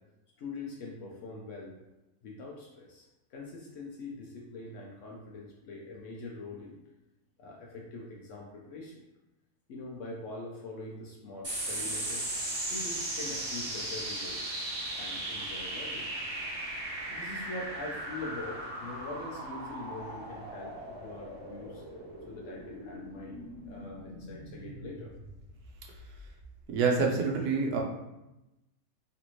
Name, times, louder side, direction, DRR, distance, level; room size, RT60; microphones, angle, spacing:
voice 1, 0.4-1.7 2.2-6.8 7.4-9.1 9.7-14.5 15.0-16.1 17.1-21.8 22.3-25.1, left 2 dB, 65° left, -1 dB, 0.8 m, -43 dB
sound 1, 11.4-26.2, right 1 dB, 25° right, 1.1 m, -38 dB
voice 2, 26.7-27.8, right 4 dB, 80° right, 1 dB, 1.1 m, -27 dB
3.3 x 2.5 x 3.0 m, 0.95 s
omnidirectional pair, 1.6 m